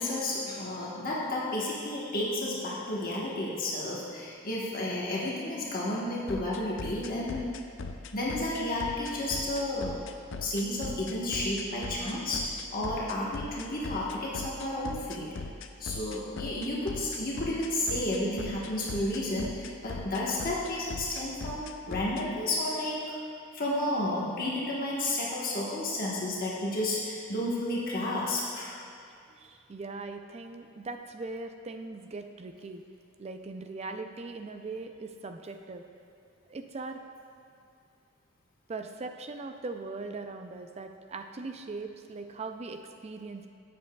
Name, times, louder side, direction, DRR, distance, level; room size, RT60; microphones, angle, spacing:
voice 1, 0.0-7.4 8.1-9.9 10.4-15.3 15.8-23.1 23.5-28.7, left 1 dB, 45° left, -5 dB, 1.2 m, -32 dB
sound 1, 6.3-22.2, left 4 dB, 65° left, 0.5 m, -39 dB
voice 2, 29.4-32.8 33.2-35.8 36.5-37.0 38.7-43.5, right 3 dB, 30° right, 6 dB, 0.4 m, -40 dB
13.0 x 7.7 x 2.3 m, 2.4 s
head